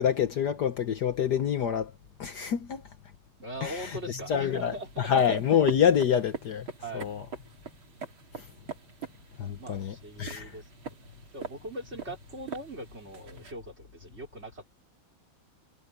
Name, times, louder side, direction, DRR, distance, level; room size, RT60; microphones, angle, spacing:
voice 1, 0.0-1.9 2.2-2.8 3.6-6.7 6.9-7.2 8.4-8.5 9.4-10.5, left 8 dB, 60° left, 1.5 m, -27 dB
voice 2, 3.4-5.1 6.8-7.1 9.4-10.6 11.0-14.6, right 1 dB, 30° right, 4.1 m, -41 dB
sound 1, 3.7-13.5, right 6 dB, 80° right, 3.8 m, -44 dB
omnidirectional pair, 2.2 m